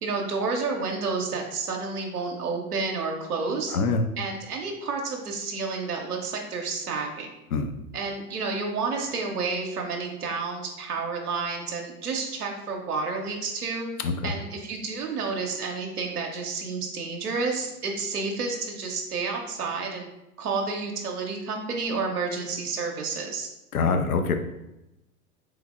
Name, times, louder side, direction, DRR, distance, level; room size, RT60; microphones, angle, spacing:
voice 1, 0.0-3.8 4.2-7.3 7.9-13.9 14.2-20.1 20.4-23.5, right 4 dB, 80° right, 1 dB, 0.6 m, -30 dB
voice 2, 3.7-4.0 7.5-7.7 14.0-14.3 23.7-24.4, left 4 dB, 75° left, 6 dB, 0.6 m, -24 dB
3.3 x 3.1 x 2.4 m, 0.92 s
figure-of-eight pair, 90°, 45 cm